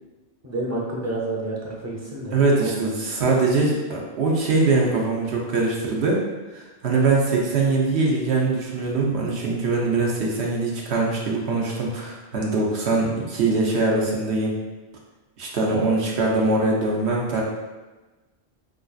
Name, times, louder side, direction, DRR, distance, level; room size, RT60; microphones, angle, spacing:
voice 1, 0.4-3.0, right 2 dB, 20° right, -4 dB, 0.6 m, -30 dB
voice 2, 2.3-6.2 6.5-14.5 15.4-17.4, right 3 dB, 80° right, -2 dB, 1.1 m, -22 dB
5.3 x 2.6 x 2.4 m, 1.2 s
omnidirectional pair, 1.1 m